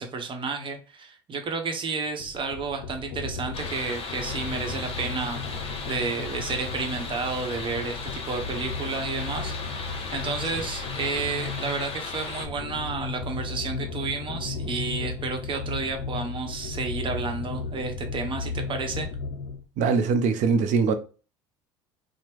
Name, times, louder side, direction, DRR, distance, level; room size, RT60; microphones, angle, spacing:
voice 1, 0.0-19.1, right 4 dB, 35° right, 0.9 m, -31 dB
sound 1, 2.2-19.6, left 4 dB, 75° left, 0.5 m, -35 dB
sound 2, 3.5-12.5, left 4 dB, 45° left, 0.9 m, -37 dB
voice 2, 19.8-20.9, right 5 dB, 60° right, 0.6 m, -22 dB
2.9 x 2.1 x 3.4 m
hypercardioid pair, 75°, 14 cm